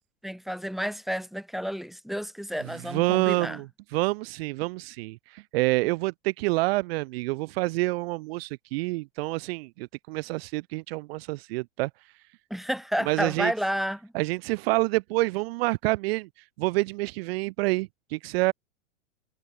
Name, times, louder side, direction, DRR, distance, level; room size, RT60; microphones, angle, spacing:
voice 1, 0.2-3.6 12.5-14.1, equal, ahead, 7.3 m, -31 dB
voice 2, 2.8-3.7 3.9-11.9 13.1-13.5 14.1-16.3 16.6-18.5, right 22 dB, 50° right, 1.3 m, -27 dB
hypercardioid pair, 110°, 38 cm